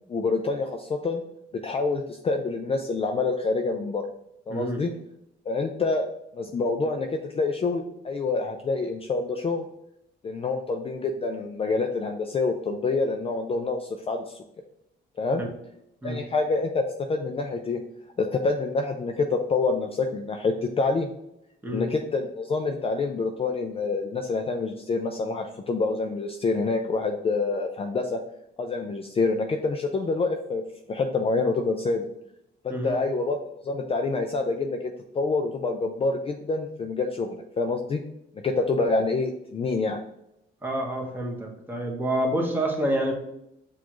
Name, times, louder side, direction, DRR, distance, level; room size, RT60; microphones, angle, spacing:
voice 1, 0.1-1.2 1.6-4.0 4.5-4.9 5.5-6.0 6.3-9.6 10.2-14.4 15.2-15.4 16.0-17.8 18.2-21.1 21.7-28.2 28.6-30.6 30.9-32.1 32.6-38.0 38.4-40.0, left 3 dB, 30° left, 4 dB, 0.4 m, -27 dB
voice 2, 40.6-43.1, right 1 dB, 10° right, -1 dB, 1.2 m, -28 dB
5.9 x 2.5 x 3.0 m, 0.80 s
cardioid pair, 90°, 20 cm